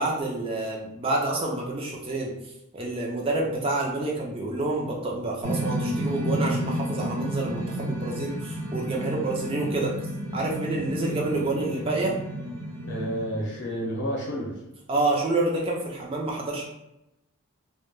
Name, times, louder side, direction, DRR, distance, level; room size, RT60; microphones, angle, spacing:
voice 1, 0.0-2.3 2.7-9.9 10.3-12.2 14.9-16.6, right 2 dB, 25° right, -2 dB, 0.3 m, -28 dB
sound 1, 5.4-13.9, right 1 dB, 80° right, 0.6 m, -31 dB
voice 2, 12.9-14.6, equal, 55° left, -2 dB, 0.7 m, -30 dB
2.1 x 2.1 x 3.0 m, 0.89 s
head